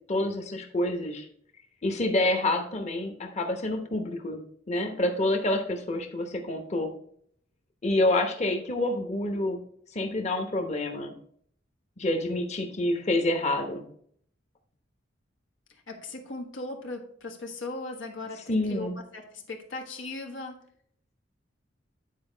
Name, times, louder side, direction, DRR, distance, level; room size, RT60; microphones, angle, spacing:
voice 1, 0.1-1.2 1.8-4.4 4.7-6.9 7.8-9.6 9.9-11.1 12.0-13.8 18.5-18.9, left 1 dB, 35° left, 4 dB, 1.0 m, -27 dB
voice 2, 15.9-20.6, left 2 dB, 85° left, 3 dB, 1.4 m, -38 dB
9.5 x 4.7 x 3.9 m, 0.62 s
head